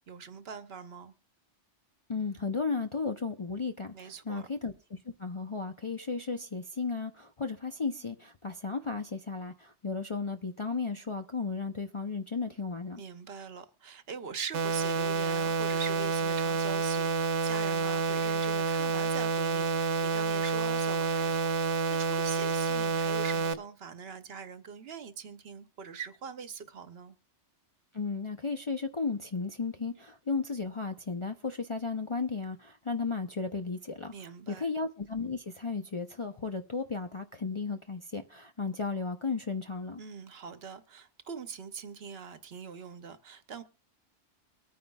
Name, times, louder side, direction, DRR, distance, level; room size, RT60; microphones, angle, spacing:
voice 1, 0.1-1.1 3.9-4.5 13.0-27.1 34.1-34.7 40.0-43.6, right 6 dB, 60° right, 1.0 m, -43 dB
voice 2, 2.1-13.0 27.9-34.1 34.5-40.0, left 4 dB, 35° left, 0.5 m, -34 dB
sound 1, 14.5-23.5, right 5 dB, 90° right, 1.1 m, -29 dB
23.5 x 9.3 x 2.3 m
omnidirectional pair, 1.2 m